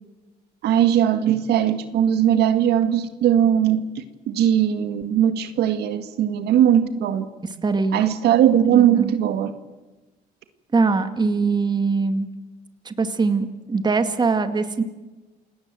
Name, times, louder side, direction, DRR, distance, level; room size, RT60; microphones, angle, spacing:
voice 1, 0.6-7.3 7.9-9.5, right 10 dB, 75° right, 9 dB, 1.9 m, -19 dB
voice 2, 7.4-8.1 8.7-9.2 10.7-12.3 12.9-14.8, right 4 dB, 25° right, 9 dB, 2.2 m, -22 dB
28.5 x 19.0 x 7.7 m, 1.1 s
cardioid pair, 110°, 17 cm